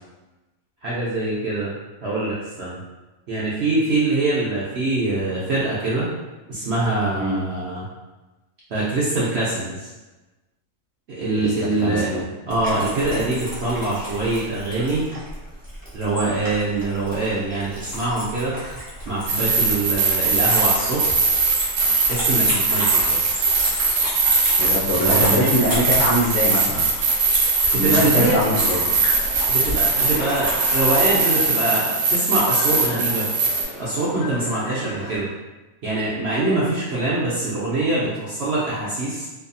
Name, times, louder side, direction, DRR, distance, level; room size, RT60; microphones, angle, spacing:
voice 1, 0.8-1.7 2.0-2.8 3.3-6.1 6.5-7.8 8.7-9.9 11.1-12.1 12.5-15.0 15.9-18.5 19.0-21.2 22.0-23.3 25.0-25.5 27.7-28.4 29.5-33.2 33.8-35.3 35.8-39.2, right 2 dB, 60° right, -8 dB, 0.7 m, -24 dB
voice 2, 11.4-12.2 24.6-26.9 27.7-28.9, left 1 dB, 65° left, -5 dB, 0.8 m, -23 dB
sound 1, 12.5-31.2, equal, 20° right, 0.6 m, -31 dB
sound 2, 19.3-33.6, right 4 dB, 80° right, 1.1 m, -21 dB
sound 3, 27.9-35.2, left 1 dB, 35° left, 0.8 m, -36 dB
2.7 x 2.3 x 2.6 m, 1.1 s
omnidirectional pair, 1.6 m